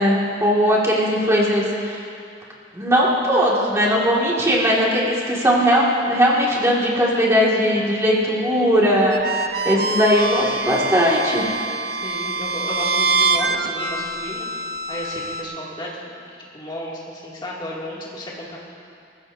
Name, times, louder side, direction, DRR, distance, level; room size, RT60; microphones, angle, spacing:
voice 1, 0.0-2.0 2.7-11.4, equal, 15° right, -5 dB, 2.0 m, -19 dB
sound 1, 9.1-15.4, right 3 dB, 55° right, 0.8 m, -24 dB
voice 2, 12.0-14.5 14.9-15.9 16.5-18.6, left 1 dB, 25° left, -5 dB, 2.4 m, -32 dB
21.0 x 15.0 x 2.7 m, 2.5 s
head